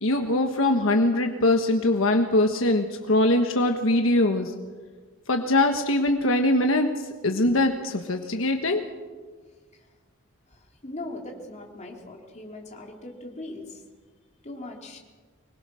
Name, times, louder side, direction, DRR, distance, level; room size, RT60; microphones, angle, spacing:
voice 1, 0.0-4.5 5.3-6.9 7.2-8.8, left 1 dB, 70° left, 4 dB, 1.4 m, -22 dB
voice 2, 10.5-13.8 14.4-15.0, left 2 dB, 35° left, 0 dB, 3.5 m, -40 dB
24.5 x 21.0 x 6.4 m, 1.4 s
head